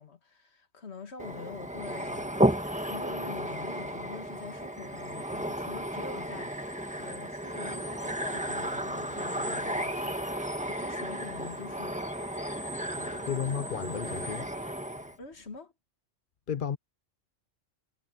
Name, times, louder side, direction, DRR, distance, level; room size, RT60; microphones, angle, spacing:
voice 1, 0.0-2.5 2.9-6.7 7.0-10.2 10.7-12.6 13.0-13.4 15.2-15.7, left 4 dB, 70° left, 2.1 m, -45 dB
sound 1, 1.2-15.2, right 1 dB, 5° right, 1.6 m, -33 dB
voice 2, 13.3-14.5 16.5-16.8, left 8 dB, 50° left, 0.9 m, -32 dB
omnidirectional pair, 1.2 m